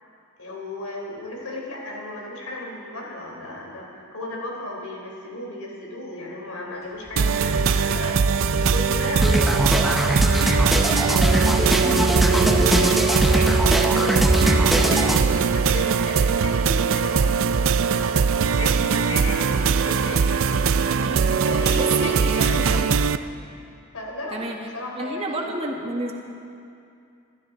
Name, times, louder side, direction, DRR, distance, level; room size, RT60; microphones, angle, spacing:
voice 1, 0.4-10.4 11.0-12.0 12.2-12.9 13.3-14.2 14.7-17.4 17.8-20.7 21.4-22.9 23.9-25.5, left 1 dB, 90° left, -2 dB, 3.9 m, -35 dB
sound 1, 6.8-17.6, equal, 15° left, 4.6 m, -34 dB
sound 2, 7.2-23.2, right 5 dB, 60° right, 0.5 m, -21 dB
sound 3, 9.2-15.2, equal, ahead, 0.8 m, -21 dB
voice 2, 20.9-21.3 21.7-22.9 24.3-24.6 25.0-26.1, right 2 dB, 25° right, 0 dB, 1.7 m, -30 dB
26.5 x 13.5 x 4.0 m, 2.5 s
head